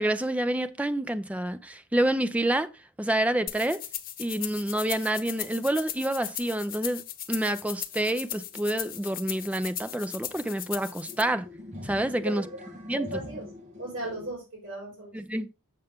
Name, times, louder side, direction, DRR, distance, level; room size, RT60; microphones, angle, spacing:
voice 1, 0.0-2.7 3.0-3.8 4.2-7.0 7.3-11.5 11.8-12.5 12.9-13.1 15.1-15.5, right 1 dB, 5° right, 0.4 m, -28 dB
sound 1, 3.5-11.2, left 11 dB, 40° left, 0.6 m, -38 dB
sound 2, 7.9-8.0 8.3-14.3, left 1 dB, 30° right, 1.4 m, -46 dB
voice 2, 12.9-13.4 13.8-15.1, right 1 dB, 55° right, 4.9 m, -36 dB
6.9 x 6.7 x 3.4 m
head